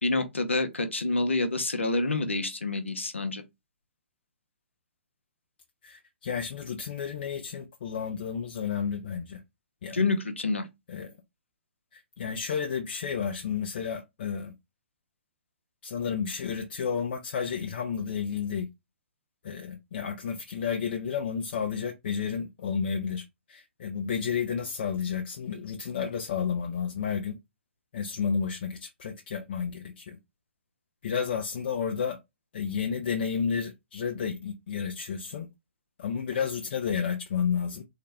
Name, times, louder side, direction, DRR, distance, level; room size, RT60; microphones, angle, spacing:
voice 1, 0.0-3.4 9.9-10.7, left 3 dB, 80° left, 0.8 m, -27 dB
voice 2, 5.8-9.4 9.8-10.0 10.9-11.1 11.9-14.5 15.8-18.7 19.4-27.4 27.9-30.2 31.0-32.2 32.5-35.5 36.0-37.8, left 7 dB, 50° left, 0.5 m, -31 dB
3.7 x 2.1 x 3.3 m
figure-of-eight pair, 125°, 6 cm